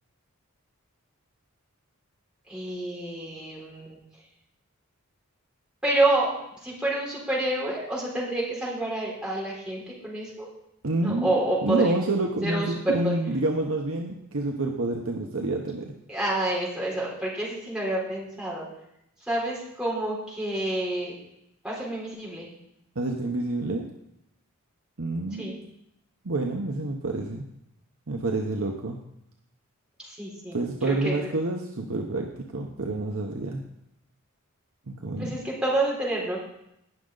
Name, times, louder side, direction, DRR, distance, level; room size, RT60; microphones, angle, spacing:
voice 1, 2.5-4.0 5.8-6.3 6.6-10.5 11.0-11.9 12.4-13.1 16.1-18.7 19.3-21.1 21.6-22.5 25.4-25.6 30.1-31.3 35.2-36.4, right 1 dB, 5° right, -5 dB, 3.6 m, -28 dB
voice 2, 10.8-11.3 11.6-15.9 23.0-23.9 25.0-25.6 26.2-27.4 28.1-29.0 30.5-33.6 34.9-35.3, right 2 dB, 70° right, 2 dB, 0.9 m, -28 dB
18.5 x 6.4 x 3.9 m, 0.80 s
head